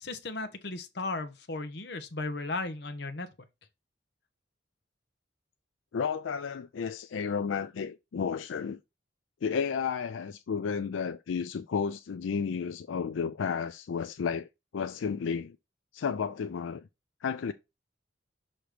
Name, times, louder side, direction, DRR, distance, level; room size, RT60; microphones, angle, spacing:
voice 1, 0.0-3.3, left 3 dB, 60° left, 0.9 m, -35 dB
voice 2, 5.9-8.8 9.4-14.5 14.7-15.6 15.9-16.9 17.2-17.5, left 6 dB, 85° left, 0.4 m, -32 dB
6.4 x 3.0 x 5.0 m
head